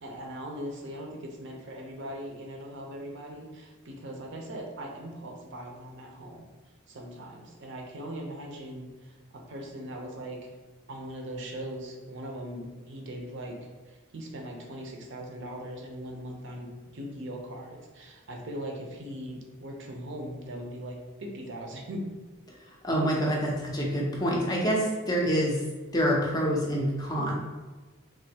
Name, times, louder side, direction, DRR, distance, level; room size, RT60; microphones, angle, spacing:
voice 1, 0.0-6.4 6.9-10.5 10.9-13.6 13.9-22.1, equal, 60° right, 1 dB, 0.6 m, -40 dB
voice 2, 22.8-25.6 25.9-27.3, equal, 20° left, -2 dB, 0.4 m, -26 dB
3.2 x 2.5 x 2.8 m, 1.2 s
head